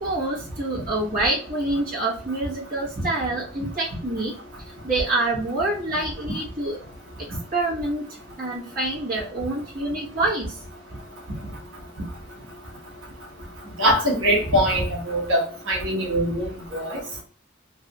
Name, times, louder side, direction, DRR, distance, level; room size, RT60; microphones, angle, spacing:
voice 1, 0.0-4.3 4.8-6.8 7.5-8.1 8.4-10.6, right 2 dB, 40° right, -7 dB, 1.1 m, -26 dB
voice 2, 13.8-15.4 15.7-17.0, equal, 60° right, -3 dB, 1.2 m, -22 dB
3.2 x 2.5 x 2.9 m, 0.42 s
head